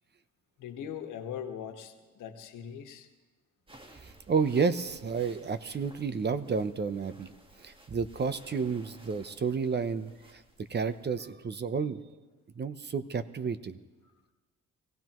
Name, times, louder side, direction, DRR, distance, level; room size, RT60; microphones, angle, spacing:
voice 1, 0.6-3.1, left 8 dB, 80° left, 5 dB, 1.6 m, -40 dB
sound 1, 3.7-11.3, right 2 dB, 15° right, 1.6 m, -55 dB
voice 2, 4.0-7.3 7.6-12.0 12.6-13.8, right 5 dB, 35° right, 12 dB, 0.8 m, -31 dB
24.5 x 16.0 x 3.1 m, 1.3 s
cardioid pair, 90°, 30 cm